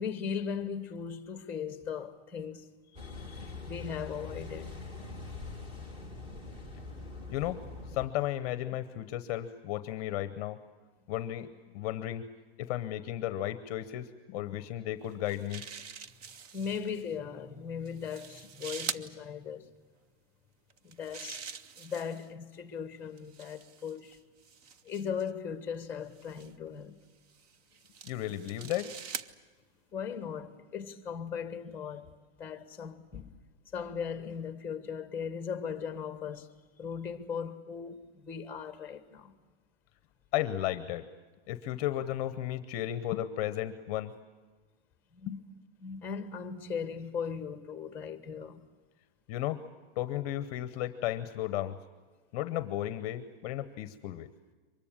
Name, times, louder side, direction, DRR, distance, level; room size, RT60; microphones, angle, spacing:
voice 1, 0.0-2.7 2.9-4.7 16.5-19.7 20.8-21.5 21.8-24.2 24.8-27.0 29.9-33.3 33.7-36.5 36.8-39.3 45.1-45.4 45.8-48.6, left 7 dB, 5° left, 1.3 m, -38 dB
Car passing by / Idling / Accelerating revving vroom, 3.0-8.1, left 3 dB, 15° right, 2.3 m, -43 dB
voice 2, 7.9-10.6 11.1-12.2 12.6-15.6 28.0-28.9 40.3-41.1 41.5-44.1 45.3-45.4 49.3-49.6 50.0-51.8 52.3-54.3, left 13 dB, 35° left, 0.8 m, -34 dB
sound 1, 15.0-17.0 17.9-19.1 20.7-22.3 23.2-25.3 26.2-26.5 27.3-29.3, right 6 dB, 40° right, 0.7 m, -44 dB
24.0 x 21.0 x 8.7 m
supercardioid pair, 170°, 32 cm